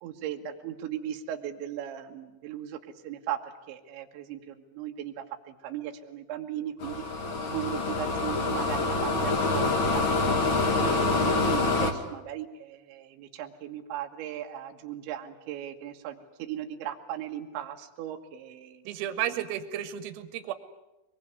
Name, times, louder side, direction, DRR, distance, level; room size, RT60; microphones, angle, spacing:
voice 1, 0.0-2.8 3.0-3.4 3.7-7.0 7.5-10.0 10.8-18.8, right 11 dB, 70° right, 3 dB, 3.7 m, -37 dB
sound 1, 6.8-11.9, left 3 dB, 80° left, 1.1 m, -26 dB
voice 2, 18.9-20.5, right 11 dB, 90° right, 11 dB, 3.8 m, -32 dB
23.5 x 22.0 x 9.5 m, 0.99 s
omnidirectional pair, 5.9 m